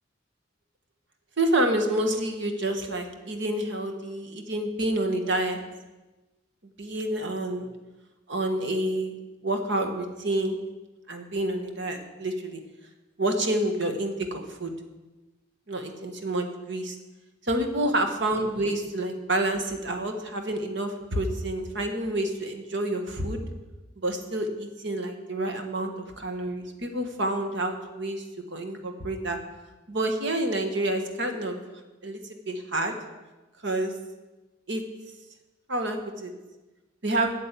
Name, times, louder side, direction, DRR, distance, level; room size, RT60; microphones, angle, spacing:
voice 1, 1.4-5.6 6.8-7.7 8.3-9.1 9.4-10.6 11.1-12.6 13.2-14.7 15.7-16.9 17.4-23.4 24.0-28.2 28.5-29.4 29.9-31.6 32.0-32.2 32.5-33.0 33.6-33.9 34.7-34.8 35.7-36.3 37.0-37.3, right 1 dB, 65° right, 5 dB, 1.5 m, -28 dB
8.9 x 7.5 x 8.4 m, 1.1 s
head